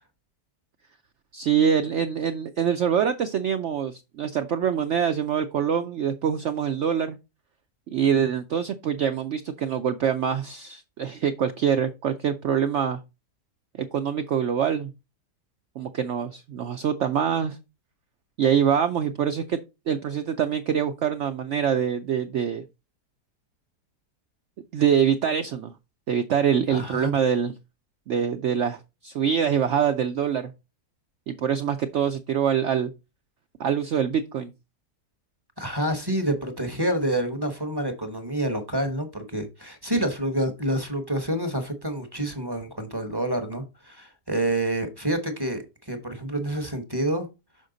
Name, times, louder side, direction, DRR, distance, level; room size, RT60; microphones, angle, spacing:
voice 1, 1.3-7.2 7.9-13.0 13.8-14.9 15.8-17.6 18.4-19.6 19.9-22.6 24.7-25.7 26.1-27.5 28.1-30.5 31.3-32.9 33.6-34.5, right 8 dB, 70° right, 0.7 m, -24 dB
voice 2, 26.7-27.2 35.6-47.3, right 1 dB, 20° right, 0.9 m, -28 dB
6.4 x 5.1 x 3.8 m
omnidirectional pair, 1.8 m